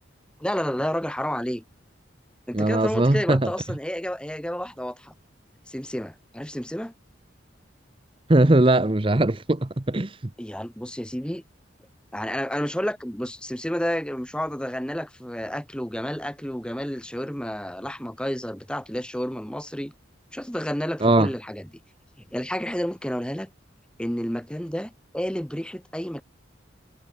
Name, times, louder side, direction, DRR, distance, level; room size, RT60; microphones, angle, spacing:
voice 1, 0.4-1.6 2.5-5.1 5.7-6.9 10.4-11.4 12.1-19.9 20.3-21.7 22.3-23.5 24.0-26.2, equal, 5° left, 1.7 m, -30 dB
voice 2, 2.5-3.5 8.3-10.2 21.0-21.3, right 2 dB, 25° right, 0.8 m, -20 dB
head